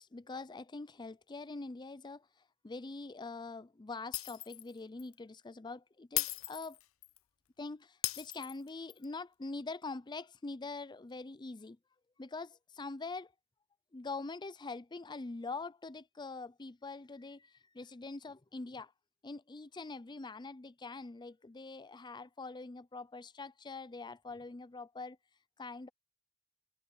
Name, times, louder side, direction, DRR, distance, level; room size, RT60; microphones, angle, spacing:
voice 1, 0.0-2.3 2.6-6.8 7.6-11.8 12.2-13.3 13.9-18.9 19.2-25.2 25.6-25.9, left 3 dB, 20° left, 0.5 m, -44 dB
Shatter, 4.1-4.7 5.0-5.1 6.2-7.2 8.0-9.0, left 17 dB, 80° left, 0.7 m, -37 dB
head